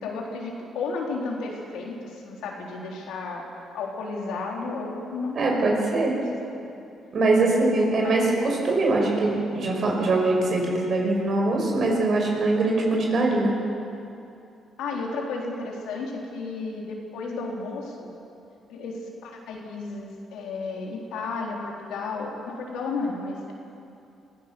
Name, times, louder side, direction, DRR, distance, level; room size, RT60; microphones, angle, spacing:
voice 1, 0.0-3.4 3.7-6.2 6.5-6.7 7.3-7.6 8.0-8.4 14.8-18.1 18.7-23.5, left 3 dB, 90° left, -1 dB, 3.8 m, -33 dB
voice 2, 5.3-6.2 7.1-13.5, right 2 dB, 55° right, 0 dB, 6.0 m, -22 dB
24.0 x 16.0 x 7.1 m, 2.7 s
cardioid pair, 90°, 0 cm